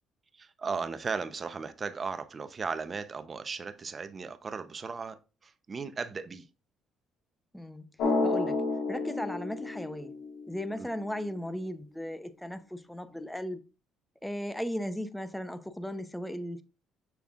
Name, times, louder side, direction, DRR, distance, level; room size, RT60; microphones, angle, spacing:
voice 1, 0.3-6.5 10.8-10.9, right 5 dB, 35° right, 0.7 m, -36 dB
voice 2, 7.5-7.8 8.2-8.6 8.9-10.1 10.5-13.6 14.2-16.6, equal, 5° left, 0.7 m, -36 dB
Drum, 8.0-10.6, left 3 dB, 80° left, 1.7 m, -30 dB
6.8 x 6.1 x 2.5 m
cardioid pair, 95°, 0 cm